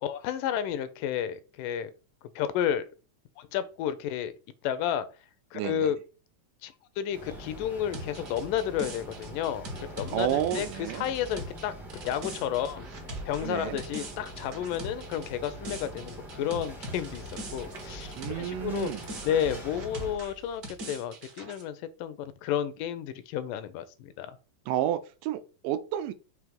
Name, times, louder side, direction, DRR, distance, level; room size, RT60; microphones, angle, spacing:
voice 1, 0.0-1.9 2.4-2.8 3.4-4.3 4.6-5.1 5.5-6.0 6.6-11.7 12.1-12.9 13.3-17.3 17.5-18.9 19.2-24.4, left 9 dB, 80° left, 2.2 m, -31 dB
voice 2, 5.5-5.9 10.1-11.1 13.4-13.8 18.2-19.0 24.7-26.1, right 11 dB, 85° right, 2.2 m, -31 dB
sound 1, 7.1-20.2, right 1 dB, ahead, 0.4 m, -43 dB
sound 2, 7.9-18.5 18.8-21.6, right 1 dB, 50° right, 1.2 m, -42 dB
6.0 x 3.2 x 5.1 m
omnidirectional pair, 3.8 m